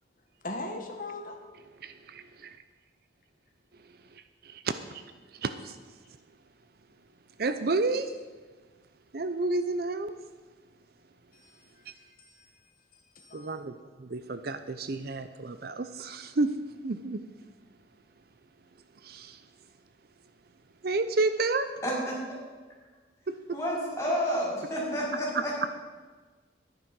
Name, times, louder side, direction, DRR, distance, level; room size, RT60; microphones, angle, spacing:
voice 1, 0.4-1.4 11.3-11.6 11.9-12.5 13.2-13.5, left 2 dB, 50° left, 3 dB, 1.8 m, -39 dB
voice 2, 1.8-2.6 4.4-5.0 5.4-5.8 7.4-8.1 9.1-10.1 11.9-12.0 13.3-16.5 16.8-17.2 19.0-19.4 20.8-21.7 23.3-23.4 25.3-25.4, right 3 dB, 55° right, 10 dB, 0.6 m, -30 dB
voice 3, 23.5-25.7, equal, 15° left, -5 dB, 5.1 m, -30 dB
12.0 x 10.0 x 6.2 m, 1.4 s
head